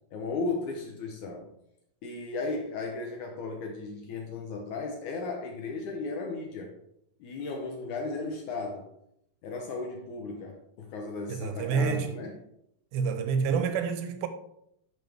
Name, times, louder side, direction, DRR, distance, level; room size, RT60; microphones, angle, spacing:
voice 1, 0.1-1.5 2.0-6.8 7.2-8.9 9.4-12.4 13.5-13.6, left 3 dB, 70° left, 1.9 m, -35 dB
voice 2, 11.3-12.1 12.9-14.3, right 6 dB, 85° right, 2.6 m, -28 dB
10.5 x 5.7 x 3.4 m
omnidirectional pair, 4.3 m